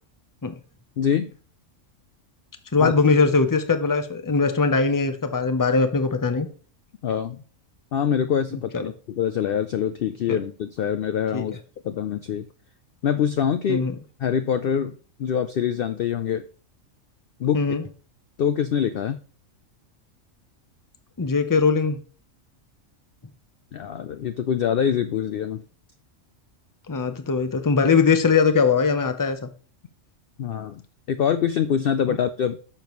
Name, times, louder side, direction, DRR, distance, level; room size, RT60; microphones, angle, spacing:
voice 1, 1.0-1.3 2.8-2.9 7.0-7.4 7.9-11.6 11.8-12.5 13.0-13.9 14.2-14.9 15.2-16.4 17.4-17.6 18.4-19.2 23.7-25.6 30.4-30.8 31.1-32.6, left 8 dB, 65° left, 10 dB, 0.6 m, -24 dB
voice 2, 2.7-6.5 8.5-8.9 10.3-10.4 11.3-11.4 13.7-13.9 17.5-17.8 21.2-22.0 26.9-29.5 32.1-32.2, left 4 dB, 20° left, 8 dB, 0.6 m, -21 dB
10.0 x 6.8 x 3.1 m, 0.40 s
omnidirectional pair, 1.4 m